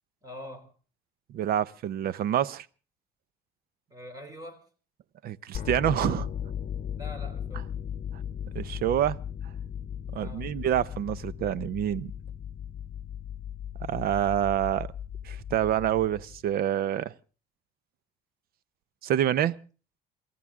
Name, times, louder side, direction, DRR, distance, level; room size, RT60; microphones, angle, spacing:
voice 1, 0.2-0.7 3.9-4.7 7.0-7.7 10.1-10.6, left 1 dB, 20° right, 3.8 m, -44 dB
voice 2, 1.3-2.7 5.2-6.3 8.5-9.2 10.1-12.1 13.8-14.9 15.2-17.1 19.0-19.6, right 11 dB, 65° right, 0.8 m, -27 dB
sound 1, 5.5-16.5, left 9 dB, 45° left, 1.0 m, -37 dB
28.0 x 14.0 x 3.7 m
cardioid pair, 110°, 17 cm